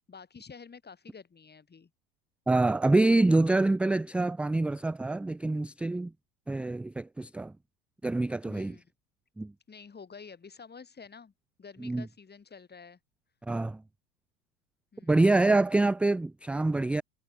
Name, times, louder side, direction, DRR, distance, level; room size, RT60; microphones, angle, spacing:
voice 1, 0.1-1.9 8.5-8.8 9.7-11.3 11.6-13.0 14.9-15.5, left 5 dB, 20° left, 4.4 m, -49 dB
voice 2, 2.5-6.1 6.5-7.5 8.0-8.7 9.4-9.5 11.8-12.0 13.5-13.8 15.1-17.0, right 2 dB, 5° right, 0.3 m, -26 dB
hypercardioid pair, 90°, 49 cm